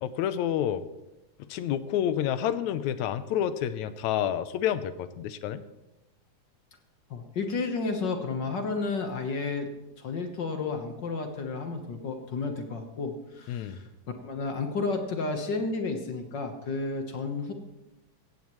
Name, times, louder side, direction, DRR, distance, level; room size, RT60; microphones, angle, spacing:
voice 1, 0.0-0.8 1.5-5.6 13.5-13.8, left 10 dB, 80° left, 13 dB, 2.0 m, -29 dB
voice 2, 7.1-9.7 10.0-13.8 14.2-17.5, left 4 dB, 55° left, 5 dB, 1.3 m, -32 dB
16.5 x 15.5 x 3.1 m, 0.99 s
omnidirectional pair, 3.4 m